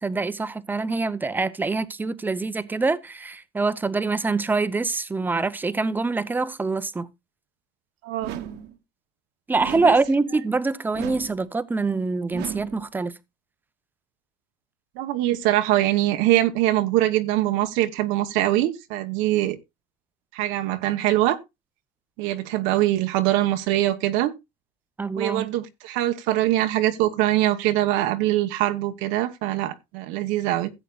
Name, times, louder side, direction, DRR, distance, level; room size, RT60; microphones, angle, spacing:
voice 1, 0.0-7.1 9.5-13.1 25.0-25.5, right 3 dB, 10° right, 0.6 m, -25 dB
voice 2, 8.0-8.4 9.8-9.9 15.0-19.6 20.3-21.4 22.2-24.3 25.2-30.7, right 15 dB, 80° right, 1.1 m, -23 dB
sound 1, 8.2-8.8 9.6-10.2 10.9-11.5 12.3-12.9, right 10 dB, 60° right, 1.2 m, -35 dB
16.0 x 8.1 x 2.4 m
cardioid pair, 145°, 19 cm